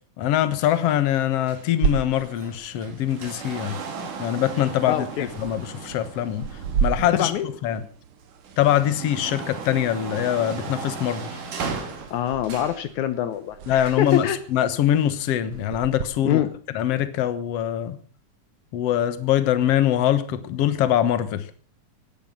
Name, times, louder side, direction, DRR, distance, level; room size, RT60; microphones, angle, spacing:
voice 1, 0.2-3.8 4.2-6.5 6.8-7.3 7.6-7.8 8.6-11.4 13.7-16.4 16.7-18.0 18.7-21.6, left 11 dB, 60° left, 12 dB, 2.2 m, -23 dB
sound 1, 0.6-7.8 8.3-12.9 13.8-14.4 15.3-15.4, right 5 dB, 90° right, 4.3 m, -37 dB
sound 2, 1.8-16.0, right 7 dB, 60° right, 1.7 m, -34 dB
voice 2, 4.9-5.3 7.0-7.5 12.1-14.4 16.2-16.5, left 11 dB, 75° left, 12 dB, 2.3 m, -25 dB
17.5 x 11.5 x 5.8 m, 0.39 s
omnidirectional pair, 3.5 m